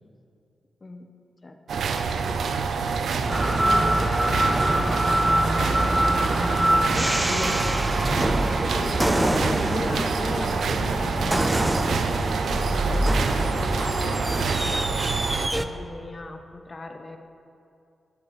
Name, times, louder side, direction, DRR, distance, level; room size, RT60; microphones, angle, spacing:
voice 1, 0.8-1.1 1.4-1.9 3.6-4.1 6.9-8.2 8.7-14.2 14.6-17.2, left 2 dB, 35° left, 6 dB, 0.6 m, -37 dB
sound 1, 1.7-15.5, right 5 dB, 80° right, 0.5 m, -27 dB
voice 2, 3.1-7.6, right 1 dB, 45° right, -1 dB, 1.7 m, -40 dB
sound 2, 3.3-15.7, right 1 dB, 10° right, 0.5 m, -24 dB
11.5 x 10.5 x 3.1 m, 2.6 s
cardioid pair, 80°, 0 cm